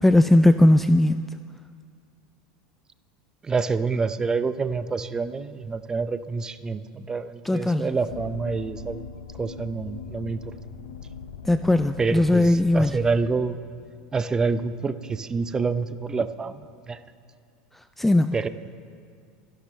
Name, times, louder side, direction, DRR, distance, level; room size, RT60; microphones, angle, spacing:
voice 1, 0.0-1.3 7.4-7.9 11.4-13.0 18.0-18.5, left 1 dB, 5° left, 10 dB, 0.3 m, -19 dB
voice 2, 3.4-9.0 9.4-10.4 12.0-13.6 14.1-17.0 18.3-18.5, right 4 dB, 20° right, 12 dB, 0.7 m, -27 dB
sound 1, 8.1-13.3, left 6 dB, 90° left, 1.0 m, -40 dB
28.5 x 11.5 x 3.3 m, 2.3 s
hypercardioid pair, 100°, 3 cm